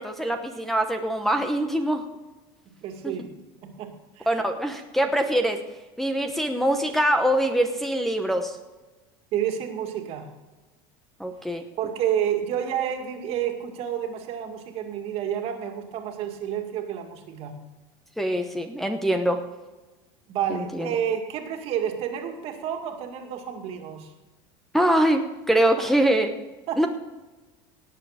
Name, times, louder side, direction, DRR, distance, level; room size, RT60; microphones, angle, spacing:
voice 1, 0.0-2.0 3.2-3.3 4.3-5.6 6.0-8.6 11.2-11.7 18.2-19.4 20.5-20.9 24.7-26.3 26.8-26.9, right 1 dB, ahead, 3 dB, 0.9 m, -23 dB
voice 2, 2.8-3.3 3.6-4.3 9.3-10.3 11.8-17.6 20.3-24.1 26.7-26.9, right 9 dB, 50° right, 4 dB, 2.2 m, -30 dB
18.0 x 7.6 x 5.0 m, 1.2 s
supercardioid pair, 130°, 12 cm